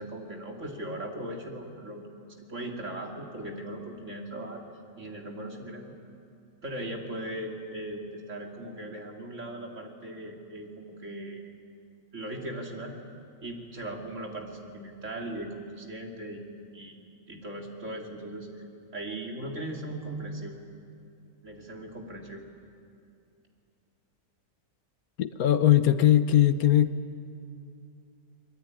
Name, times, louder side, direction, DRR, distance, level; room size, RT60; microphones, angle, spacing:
voice 1, 0.0-4.6 5.0-5.9 6.6-11.5 12.1-13.0 13.4-16.4 16.7-16.9 17.3-18.5 18.9-20.5 21.4-22.4, right 1 dB, 55° right, 1 dB, 3.3 m, -38 dB
voice 2, 25.2-26.9, left 11 dB, 75° left, 12 dB, 1.3 m, -20 dB
24.0 x 23.0 x 9.6 m, 2.5 s
omnidirectional pair, 1.6 m